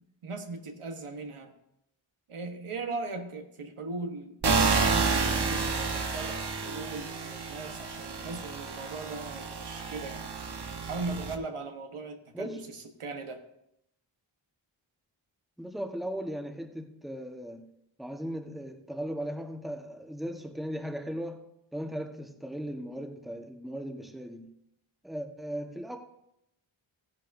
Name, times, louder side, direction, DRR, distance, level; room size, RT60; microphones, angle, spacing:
voice 1, 0.0-1.5 2.3-10.3 10.9-13.4, right 3 dB, 80° right, 1.3 m, -39 dB
sound 1, 4.4-11.4, right 4 dB, 50° right, 1.1 m, -30 dB
voice 2, 12.3-12.7 15.6-17.7 18.0-21.4 21.7-24.5 25.0-26.0, equal, ahead, 1.2 m, -37 dB
15.0 x 10.5 x 2.7 m
wide cardioid pair, 65°, 50 cm